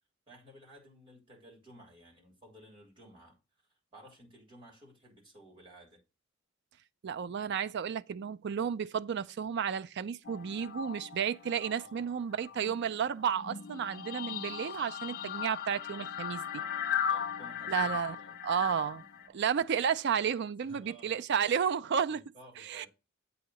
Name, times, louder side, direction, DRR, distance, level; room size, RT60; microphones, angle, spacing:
voice 1, 0.3-3.4 3.9-6.0 11.8-12.2 12.4-12.7 16.4-19.4 20.6-21.2 22.1-22.9, right 1 dB, 25° right, 3.2 m, -56 dB
voice 2, 7.0-16.4 17.7-18.2 18.4-19.0 19.3-22.2 22.6-22.9, right 7 dB, 55° right, 0.4 m, -32 dB
sound 1, 10.3-12.0 12.3-19.3, left 8 dB, 50° left, 0.5 m, -38 dB
8.0 x 2.8 x 6.1 m
head